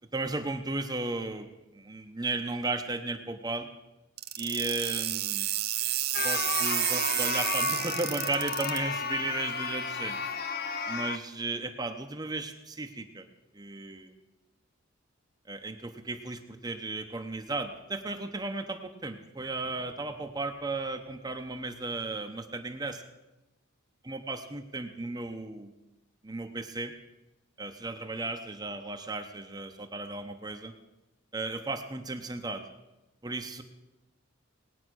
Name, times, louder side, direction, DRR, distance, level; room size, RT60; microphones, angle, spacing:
voice 1, 0.1-3.7 4.4-5.5 6.2-10.2 10.9-13.3 13.5-14.1 15.5-23.0 24.0-25.7 26.2-26.9 27.6-30.7 31.3-32.6 33.2-33.6, right 3 dB, 20° right, 5 dB, 0.8 m, -35 dB
sound 1, 4.2-8.8, right 13 dB, 50° right, 0.8 m, -30 dB
sound 2, 6.1-11.2, left 5 dB, 50° left, 0.7 m, -33 dB
19.0 x 9.3 x 6.2 m, 1.0 s
head